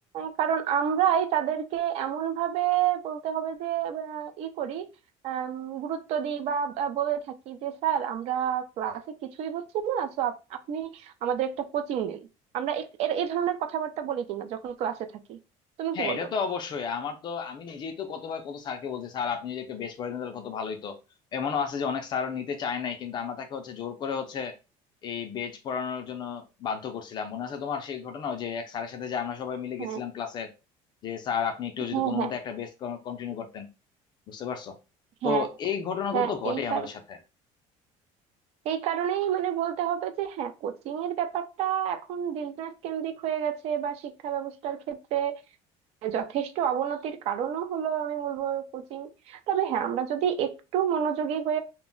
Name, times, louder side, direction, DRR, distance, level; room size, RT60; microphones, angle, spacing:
voice 1, 0.1-4.9 5.2-12.3 12.5-15.4 15.8-16.3 29.8-30.0 31.9-32.3 35.2-35.5 36.1-36.9 38.6-45.4 46.0-51.6, right 9 dB, 55° right, 0.4 m, -29 dB
voice 2, 15.9-21.0 21.3-24.6 25.0-30.5 31.0-33.7 34.3-34.8 35.2-37.2, left 6 dB, 35° left, 0.3 m, -32 dB
2.1 x 2.0 x 3.6 m
cardioid pair, 160°, 13 cm